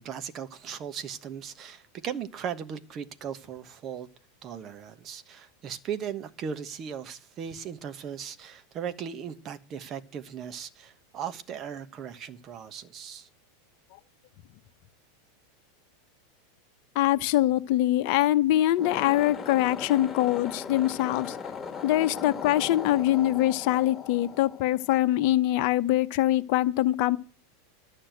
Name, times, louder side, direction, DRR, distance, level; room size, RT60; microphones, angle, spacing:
voice 1, 0.0-4.1 4.4-13.3, right 8 dB, 40° right, 1.2 m, -37 dB
voice 2, 16.9-21.4 21.8-27.2, left 14 dB, 55° left, 0.8 m, -23 dB
sound 1, 18.7-25.2, left 6 dB, 15° left, 1.8 m, -38 dB
11.5 x 6.5 x 7.8 m
hypercardioid pair, 90°, 0 cm